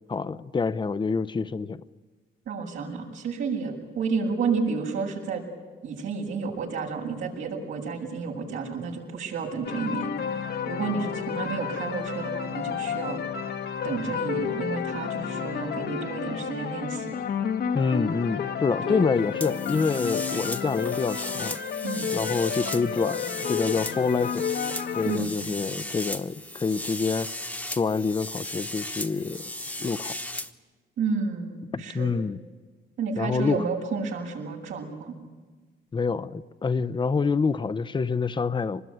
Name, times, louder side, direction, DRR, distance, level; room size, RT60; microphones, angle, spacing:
voice 1, 0.1-1.8 17.7-21.6 22.1-24.5 25.0-27.3 27.7-29.4 29.8-30.1 31.7-32.4 33.2-33.6 35.9-38.8, left 4 dB, 25° left, 13 dB, 0.7 m, -27 dB
voice 2, 2.5-5.4 5.8-13.2 13.8-17.2 18.8-19.0 21.8-22.1 25.1-25.3 31.0-32.1 33.0-35.2, right 5 dB, 85° right, -3 dB, 7.2 m, -31 dB
sound 1, 9.6-25.2, left 7 dB, 55° left, 1.2 m, -31 dB
sound 2, 19.4-30.5, left 1 dB, 5° left, 1.2 m, -36 dB
24.5 x 20.5 x 9.5 m, 1.4 s
cardioid pair, 90°, 20 cm